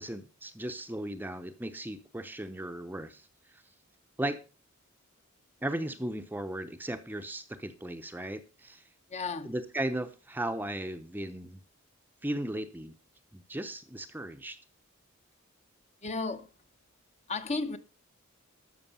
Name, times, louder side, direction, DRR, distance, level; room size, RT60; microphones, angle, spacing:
voice 1, 0.0-3.2 4.2-4.4 5.6-8.8 9.4-11.6 12.2-12.9 13.3-14.6, right 1 dB, 10° right, 0.7 m, -36 dB
voice 2, 9.1-9.5 16.0-16.5 17.3-17.8, left 3 dB, 30° left, 0.8 m, -33 dB
13.0 x 6.4 x 5.4 m
head